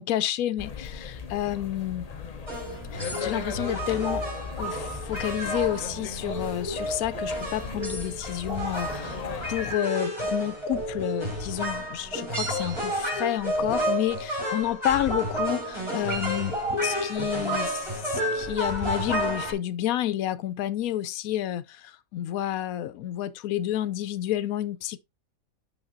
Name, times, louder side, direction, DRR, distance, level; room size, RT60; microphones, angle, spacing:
voice 1, 0.0-2.1 2.9-4.2 4.6-9.2 9.5-16.5 16.8-25.0, left 12 dB, 85° left, 1.0 m, -30 dB
sound 1, 0.6-9.7, left 4 dB, 40° left, 0.6 m, -38 dB
sound 2, 2.5-19.5, equal, 20° right, 4.2 m, -31 dB
11.5 x 3.9 x 2.6 m
omnidirectional pair, 1.5 m